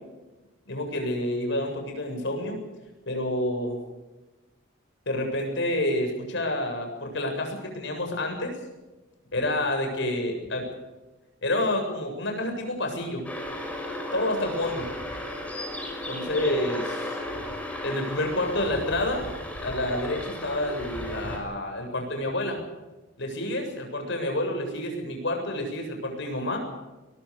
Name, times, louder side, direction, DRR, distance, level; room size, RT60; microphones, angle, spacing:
voice 1, 0.7-2.6 3.1-3.8 5.1-8.5 9.3-10.7 11.4-13.3 14.1-14.9 16.1-17.2 17.8-19.3 19.6-22.6 23.2-26.6, left 1 dB, 65° left, 3 dB, 7.6 m, -29 dB
sound 1, 13.2-21.4, left 1 dB, 5° left, 5.9 m, -34 dB
22.0 x 22.0 x 6.7 m, 1.1 s
head